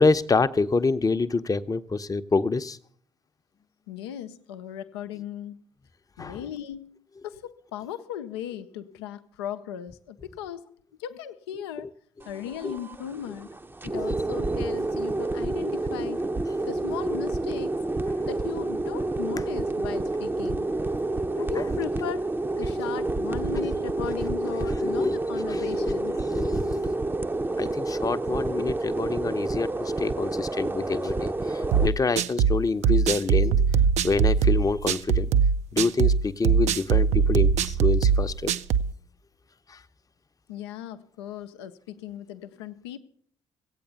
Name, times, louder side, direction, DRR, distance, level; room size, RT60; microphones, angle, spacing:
voice 1, 0.0-2.8 6.2-6.4 12.6-12.8 18.2-18.3 21.4-21.5 23.6-23.7 24.7-25.1 25.5-26.0 26.2-26.9 27.6-33.5 34.0-35.3 35.7-38.5, left 3 dB, 25° left, 0.7 m, -26 dB
voice 2, 3.9-5.6 6.2-10.7 11.0-11.9 12.2-13.5 13.8-16.3 16.7-17.8 18.3-20.7 21.4-22.3 22.6-26.2 40.5-43.0, left 10 dB, 80° left, 0.6 m, -37 dB
sound 1, 12.2-31.9, right 2 dB, 15° right, 0.6 m, -29 dB
sound 2, 31.7-38.9, right 6 dB, 60° right, 0.5 m, -21 dB
16.0 x 8.5 x 6.9 m
hypercardioid pair, 45°, 13 cm